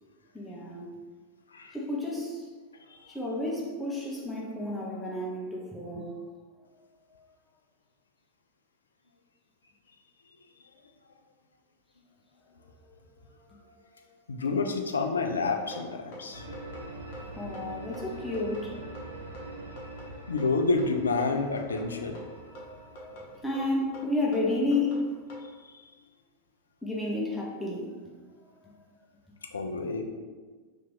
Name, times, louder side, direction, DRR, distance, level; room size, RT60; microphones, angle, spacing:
voice 1, 0.3-1.0 1.7-2.5 3.1-6.1 7.1-7.3 12.9-13.0 13.5-13.6 16.2-16.3 16.8-16.9 17.2-18.9 22.3-25.1 26.8-27.9 28.3-28.8, left 2 dB, 5° left, -4 dB, 0.6 m, -32 dB
voice 2, 14.3-16.5 20.3-22.2 25.6-25.8 29.5-30.0, left 3 dB, 70° left, 4 dB, 0.3 m, -29 dB
sound 1, 15.7-25.5, equal, 50° left, 0.8 m, -46 dB
sound 2, 16.3-25.2, right 1 dB, 80° right, 0.6 m, -45 dB
2.9 x 2.5 x 3.6 m, 1.4 s
figure-of-eight pair, 90°, 0 cm